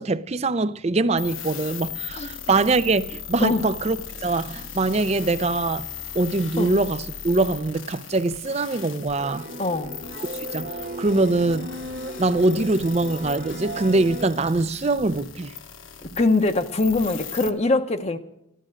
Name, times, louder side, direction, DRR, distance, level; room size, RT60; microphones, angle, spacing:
voice 1, 0.0-5.9 6.1-9.5 10.5-11.7 12.2-15.5, right 2 dB, 30° right, 0.5 m, -23 dB
sound 1, 1.2-17.5, left 8 dB, 75° left, 1.2 m, -38 dB
sound 2, 9.2-14.3, right 1 dB, 50° right, 1.6 m, -36 dB
voice 2, 9.6-9.9 16.2-18.2, left 2 dB, 30° left, 0.7 m, -22 dB
14.5 x 12.0 x 6.3 m
head